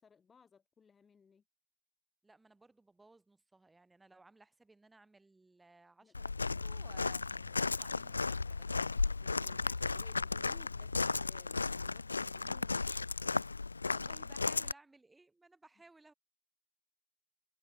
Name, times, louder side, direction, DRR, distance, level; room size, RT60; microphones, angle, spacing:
voice 1, 0.0-1.4 6.0-6.2 9.2-12.9, left 6 dB, 10° left, 4.4 m, -62 dB
voice 2, 2.2-9.2 13.8-16.1, right 2 dB, 5° right, 6.9 m, -61 dB
Walk footsteps, 6.1-14.7, left 4 dB, 80° left, 0.8 m, -35 dB
sound 1, 7.1-11.1, left 8 dB, 60° left, 2.0 m, -58 dB
figure-of-eight pair, 130°, 0 cm